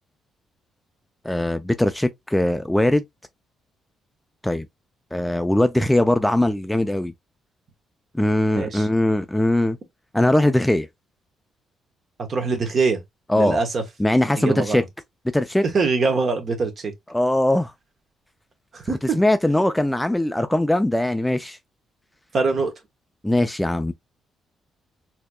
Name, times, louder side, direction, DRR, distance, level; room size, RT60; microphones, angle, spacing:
voice 1, 1.2-3.0 4.4-4.7 5.1-7.1 8.1-9.8 10.1-10.9 13.3-13.6 14.0-14.8 15.3-15.6 17.1-17.7 19.1-21.6 23.2-23.9, left 1 dB, 5° left, 0.3 m, -20 dB
voice 2, 8.5-8.9 12.2-13.0 13.3-13.8 14.4-14.8 15.7-16.9 18.7-19.2 22.3-22.7, right 4 dB, 50° right, 1.1 m, -23 dB
4.3 x 2.8 x 2.2 m
cardioid pair, 90°, 0 cm